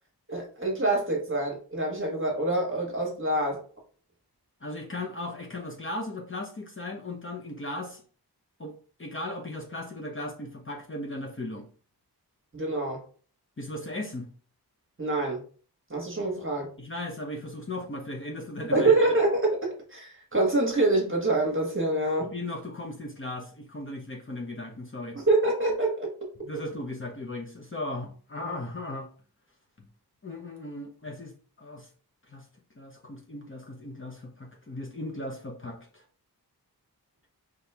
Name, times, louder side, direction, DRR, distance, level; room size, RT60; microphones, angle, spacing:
voice 1, 0.3-3.6 12.5-13.0 15.0-15.4 15.9-16.7 18.7-19.6 19.9-22.3 25.1-26.1, right 2 dB, 30° right, 0 dB, 1.4 m, -25 dB
voice 2, 4.6-8.0 8.6-11.7 13.6-14.3 16.8-18.9 22.3-25.2 26.4-29.1 30.2-31.9 32.3-32.4 32.7-36.0, left 1 dB, 30° left, 1 dB, 0.9 m, -37 dB
4.3 x 3.4 x 3.4 m, 0.42 s
wide cardioid pair, 75°, 39 cm